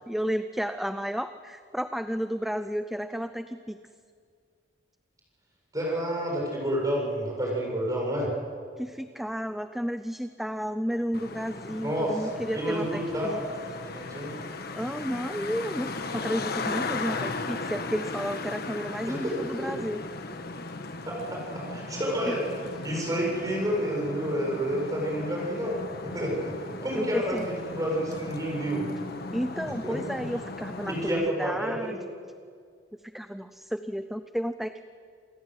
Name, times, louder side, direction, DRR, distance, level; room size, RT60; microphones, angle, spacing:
voice 1, 0.0-3.8 8.8-13.4 14.7-20.0 22.3-22.4 26.9-27.5 29.3-32.0 32.9-34.9, equal, ahead, 10 dB, 0.5 m, -32 dB
voice 2, 5.7-8.3 11.8-12.1 12.5-14.3 19.1-19.7 21.1-22.4 22.8-25.8 26.0-26.5 26.8-28.8 29.8-30.2 30.9-32.0, equal, 20° right, -2 dB, 7.4 m, -30 dB
Traffic noise roadway noise, 11.1-31.1, left 3 dB, 60° left, 1.4 m, -37 dB
28.5 x 16.0 x 8.1 m, 2.1 s
head